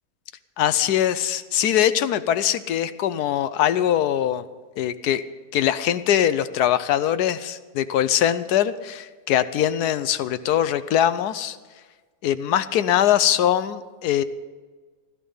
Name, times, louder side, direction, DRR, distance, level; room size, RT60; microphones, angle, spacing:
voice 1, 0.6-4.4 4.8-5.2 5.5-11.6 12.2-14.2, left 11 dB, 80° left, 13 dB, 1.2 m, -22 dB
16.5 x 12.5 x 5.5 m, 1.4 s
omnidirectional pair, 1.7 m